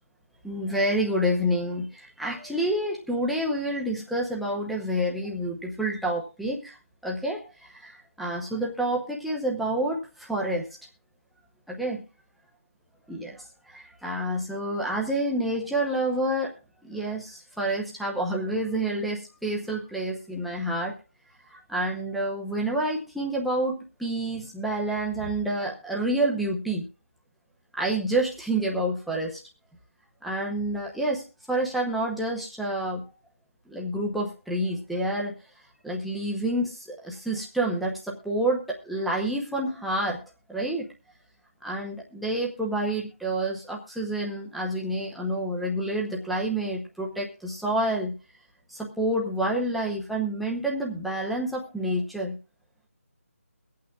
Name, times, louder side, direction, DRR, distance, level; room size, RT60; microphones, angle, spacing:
voice 1, 0.4-6.7 7.0-7.4 7.8-10.0 10.3-10.7 11.7-12.0 13.1-13.4 13.7-16.5 16.8-20.9 21.5-26.8 27.8-29.4 30.2-31.2 31.5-33.0 33.7-35.3 35.8-40.2 40.5-40.9 41.6-48.1 48.7-52.3, right 1 dB, ahead, -3 dB, 0.8 m, -28 dB
22.5 x 8.5 x 2.4 m, 0.33 s
figure-of-eight pair, 170°, 8 cm